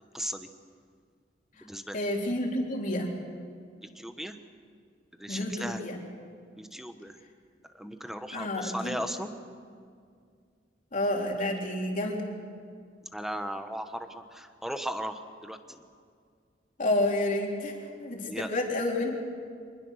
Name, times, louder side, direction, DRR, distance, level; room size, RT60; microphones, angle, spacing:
voice 1, 0.1-0.5 1.6-2.0 3.9-4.3 5.2-5.8 6.6-7.2 7.7-9.3 13.1-15.8 18.3-18.5, equal, ahead, 8 dB, 1.1 m, -36 dB
voice 2, 1.9-3.1 5.3-6.0 8.3-9.0 10.9-12.3 16.8-19.2, left 1 dB, 45° left, 0 dB, 3.5 m, -30 dB
25.0 x 21.0 x 6.5 m, 2.2 s
head